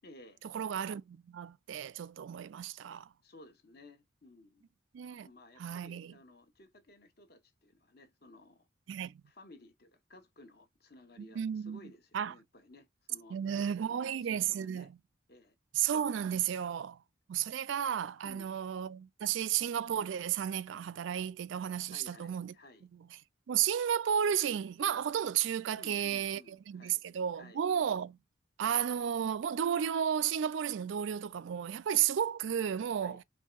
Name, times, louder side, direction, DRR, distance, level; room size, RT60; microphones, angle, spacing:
voice 1, 0.0-0.4 3.2-4.7 5.2-8.7 9.2-14.9 15.3-15.6 18.2-18.6 21.9-22.9 25.8-27.0 27.3-27.6 33.0-33.2, left 2 dB, 50° left, 1.1 m, -56 dB
voice 2, 0.5-3.1 4.9-5.3 5.6-6.1 8.9-9.2 11.2-11.8 12.1-12.3 13.3-14.9 15.7-17.0 17.3-22.5 23.5-26.4 26.7-28.2 28.6-33.2, right 9 dB, 70° right, 0.3 m, -33 dB
4.6 x 3.2 x 2.4 m
head